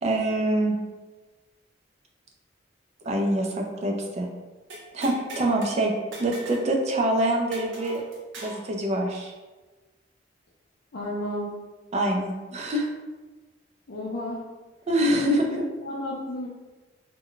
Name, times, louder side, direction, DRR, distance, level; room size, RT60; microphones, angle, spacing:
voice 1, 0.0-0.8 3.1-4.3 4.9-5.9 6.2-8.0 8.4-9.3 11.9-12.9 14.9-15.5, right 1 dB, 35° right, 1 dB, 0.4 m, -25 dB
sound 1, 4.7-5.7 6.1-6.7 6.9-7.0 7.5-8.6, right 1 dB, 80° right, 0.7 m, -40 dB
voice 2, 10.9-11.6 13.9-14.5 15.1-15.6 15.8-16.5, left 1 dB, 60° left, -6 dB, 0.5 m, -32 dB
2.2 x 2.1 x 3.8 m, 1.2 s
head